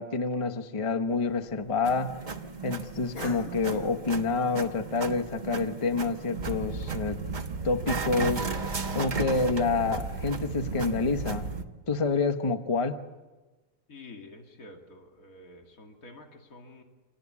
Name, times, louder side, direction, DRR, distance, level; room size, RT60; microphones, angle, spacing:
voice 1, 0.0-2.1 2.6-7.2 7.6-11.5 11.9-13.0, left 4 dB, 25° left, 7 dB, 1.0 m, -28 dB
Cough, 1.1-6.5, left 3 dB, 90° left, 2.4 m, -49 dB
sound 1, 1.8-11.6, right 4 dB, 35° right, 1.2 m, -36 dB
sound 2, 6.3-11.6, right 3 dB, 85° right, 1.9 m, -36 dB
voice 2, 13.9-16.8, left 2 dB, 75° left, 3 dB, 2.7 m, -49 dB
26.5 x 18.5 x 8.5 m, 1.2 s
omnidirectional pair, 1.5 m